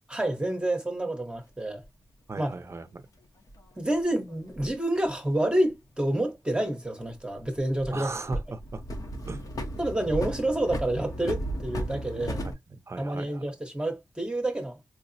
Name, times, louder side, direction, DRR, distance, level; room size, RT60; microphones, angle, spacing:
voice 1, 0.1-1.8 2.4-2.6 3.8-8.1 9.8-12.4 13.0-14.8, right 1 dB, 15° right, 0.8 m, -28 dB
sound 1, 1.8-1.9 3.5-4.8 7.0-8.0 8.3-12.5, equal, 55° left, 0.7 m, -35 dB
voice 2, 2.3-3.0 7.9-8.8 9.2-9.4 12.4-12.5 12.9-13.4, right 3 dB, 40° right, 0.5 m, -36 dB
4.4 x 2.0 x 2.6 m
wide cardioid pair, 130°, 7 cm